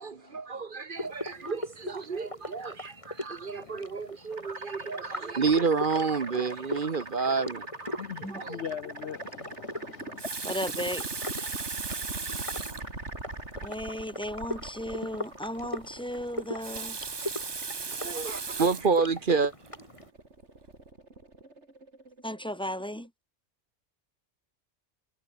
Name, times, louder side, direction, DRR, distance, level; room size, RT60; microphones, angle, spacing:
voice 1, 0.0-8.0 8.3-8.6 18.0-19.5, right 5 dB, 50° right, 1.2 m, -29 dB
sound 1, 1.0-20.1, left 1 dB, 25° left, 5.5 m, -41 dB
voice 2, 3.5-3.9 8.0-10.2, left 8 dB, 70° left, 1.1 m, -41 dB
sound 2, 4.3-23.1, right 2 dB, 75° right, 4.5 m, -43 dB
Water tap faucet, 10.0-12.9 13.7-13.8 14.1-14.2 16.4-19.0 19.6-19.9, right 5 dB, 30° right, 0.6 m, -36 dB
voice 3, 10.4-11.4 12.4-12.5 13.5-17.0 22.2-23.1, equal, 5° left, 1.6 m, -35 dB
omnidirectional pair, 1.2 m